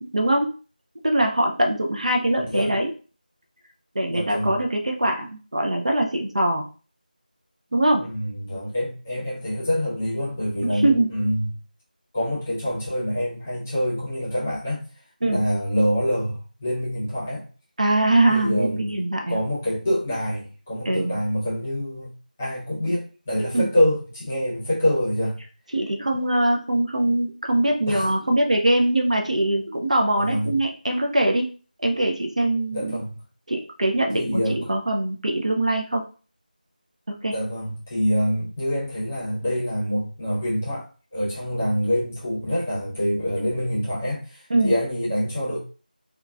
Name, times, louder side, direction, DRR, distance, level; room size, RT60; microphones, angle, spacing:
voice 1, 0.0-0.5 1.0-2.9 4.0-6.7 7.7-8.0 10.6-11.1 15.2-15.4 17.8-19.4 20.9-21.2 23.5-23.7 25.7-31.4 31.8-33.0 33.5-36.0 37.2-37.3 44.5-44.7, right 1 dB, 50° right, 2 dB, 0.4 m, -22 dB
voice 2, 2.4-2.7 4.1-4.6 8.0-11.6 12.1-14.9 15.2-17.5 18.3-18.9 19.3-22.1 22.4-25.4 27.9-28.1 30.2-30.6 32.7-33.2 34.1-34.7 37.3-40.9 41.1-45.6, equal, 15° left, -9 dB, 0.8 m, -26 dB
3.8 x 2.3 x 2.3 m, 0.36 s
figure-of-eight pair, 170°, 5 cm